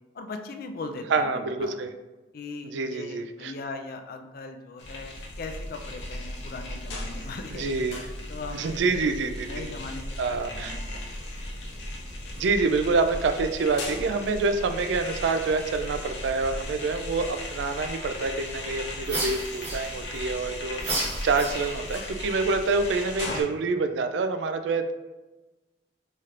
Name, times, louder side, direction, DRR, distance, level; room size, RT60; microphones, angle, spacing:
voice 1, 0.1-1.8 2.3-7.6 8.3-8.8 9.5-11.2, left 3 dB, 50° left, 6 dB, 0.4 m, -39 dB
voice 2, 1.1-1.9 2.6-3.5 7.5-8.0 8.5-9.6 10.2-10.8 12.4-24.9, right 4 dB, 75° right, 8 dB, 0.3 m, -27 dB
sound 1, 4.8-23.4, left 1 dB, 75° left, 0.7 m, -37 dB
sound 2, 19.0-20.2 20.8-22.0, right 2 dB, 35° right, 1.0 m, -32 dB
4.3 x 3.2 x 2.5 m, 1.2 s
head